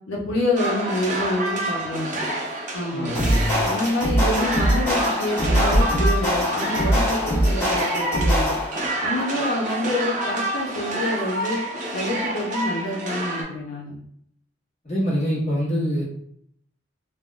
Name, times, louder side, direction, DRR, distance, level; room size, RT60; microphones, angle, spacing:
voice 1, 0.1-2.2 2.7-3.1 3.6-8.6 9.0-11.6 11.9-13.9, left 1 dB, 85° left, -2 dB, 0.6 m, -27 dB
sound 1, 0.6-13.4, right 1 dB, 40° right, 0.6 m, -28 dB
voice 2, 2.9-3.6 14.8-16.0, equal, 35° left, -6 dB, 1.0 m, -25 dB
sound 2, 3.1-8.9, equal, 10° left, 1.4 m, -22 dB
3.4 x 2.1 x 2.4 m, 0.68 s
head